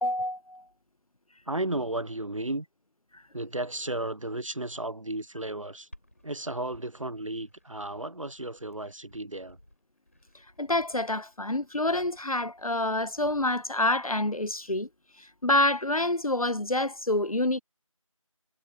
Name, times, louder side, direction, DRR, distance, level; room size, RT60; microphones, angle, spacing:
voice 1, 0.0-0.6 10.6-14.9 15.4-17.6, left 1 dB, 75° left, 1.0 m, -27 dB
voice 2, 1.5-2.7 3.3-5.9 6.2-9.6, right 1 dB, 65° right, 0.8 m, -34 dB
Glass, 5.9-13.9, left 1 dB, 25° left, 7.0 m, -57 dB
figure-of-eight pair, 175°, 18 cm